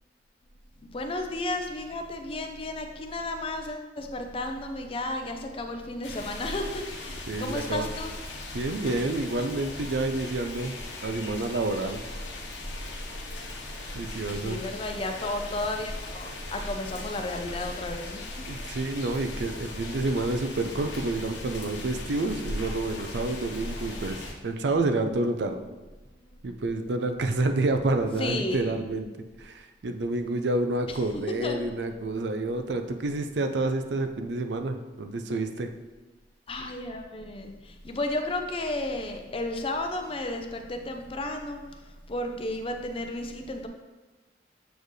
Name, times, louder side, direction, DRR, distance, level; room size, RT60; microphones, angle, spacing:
voice 1, 0.8-8.1 14.4-18.5 28.2-28.7 31.3-31.6 36.5-41.6 42.1-43.7, left 2 dB, 30° left, 5 dB, 0.5 m, -33 dB
sound 1, 6.0-24.3, left 1 dB, 85° left, 1.0 m, -38 dB
voice 2, 7.3-7.9 8.5-10.7 11.0-12.0 13.9-14.6 18.5-25.6 26.4-29.1 29.4-35.7, right 2 dB, 75° right, 7 dB, 0.5 m, -29 dB
6.8 x 4.4 x 3.1 m, 1.2 s
head